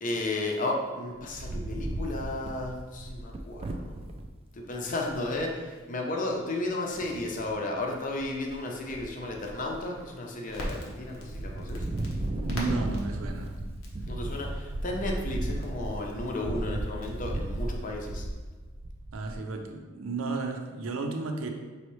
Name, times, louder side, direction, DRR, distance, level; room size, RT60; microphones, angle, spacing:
voice 1, 0.0-4.0 4.5-11.9 14.1-18.3, left 2 dB, 40° left, 1 dB, 0.6 m, -33 dB
Wind, 1.2-4.3 4.8-4.9 5.1-5.5 6.9-7.5 8.0-8.5 8.9-10.0 10.5-11.0 11.3-19.5, right 1 dB, 30° right, 0.3 m, -35 dB
Crackle, 10.5-18.4, equal, 90° left, 0.9 m, -45 dB
voice 2, 12.3-13.6 19.1-21.5, right 3 dB, 80° right, 4 dB, 0.5 m, -33 dB
5.4 x 3.1 x 3.1 m, 1.4 s
head